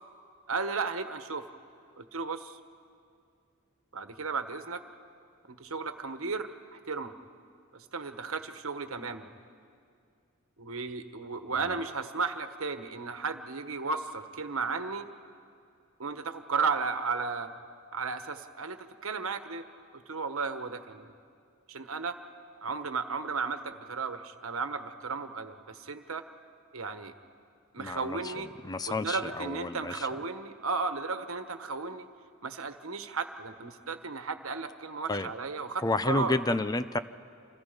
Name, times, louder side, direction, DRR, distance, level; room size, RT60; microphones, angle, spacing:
voice 1, 0.5-1.5 2.0-2.6 3.9-4.8 5.5-7.1 7.7-9.3 10.6-15.1 16.0-17.5 17.9-19.6 19.9-21.1 21.7-22.2 22.6-26.2 26.7-27.1 27.7-28.5 28.9-32.1 32.4-36.4, right 4 dB, 85° right, 8 dB, 1.3 m, -34 dB
voice 2, 27.8-28.3 28.6-30.1 35.1-35.3 35.8-37.0, left 2 dB, 20° left, 12 dB, 0.5 m, -30 dB
29.5 x 27.0 x 5.3 m, 2.3 s
head